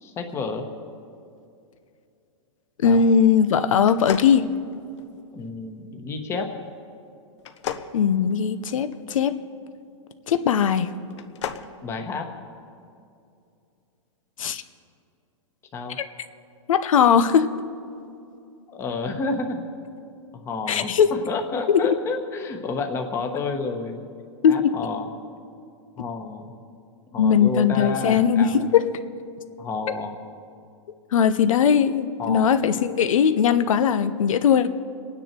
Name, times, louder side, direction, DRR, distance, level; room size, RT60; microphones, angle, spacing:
voice 1, 0.0-0.6 2.8-3.0 5.3-6.5 11.8-12.3 15.7-16.0 18.7-19.6 20.3-24.0 24.5-25.1 26.0-26.5 27.1-28.6 29.6-30.2 32.2-32.6, left 4 dB, 15° left, 4 dB, 1.1 m, -30 dB
voice 2, 2.8-4.5 7.9-9.4 10.3-10.9 14.4-14.6 16.7-17.5 20.7-21.1 21.7-21.9 24.4-24.7 27.2-28.8 29.9-30.0 31.1-34.7, left 7 dB, 90° left, 10 dB, 0.8 m, -19 dB
sound 1, 3.8-5.2 7.4-9.0 11.0-11.7, left 9 dB, 60° left, 0.9 m, -34 dB
27.0 x 9.8 x 4.5 m, 2.5 s
supercardioid pair, 165°, 17 cm